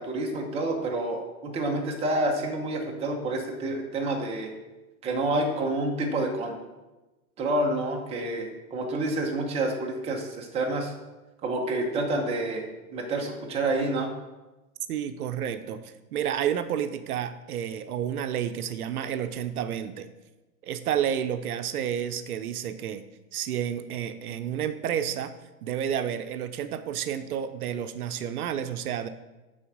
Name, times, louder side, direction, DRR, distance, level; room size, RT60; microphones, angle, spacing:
voice 1, 0.0-4.5 5.0-6.6 7.4-10.9 11.4-12.6 12.9-14.1, right 2 dB, 15° right, 1 dB, 0.9 m, -28 dB
voice 2, 14.9-20.1 20.6-23.0 23.3-25.3 25.6-29.1, right 9 dB, 75° right, 10 dB, 0.7 m, -30 dB
9.8 x 4.0 x 6.2 m, 1.1 s
hypercardioid pair, 150°, 45 cm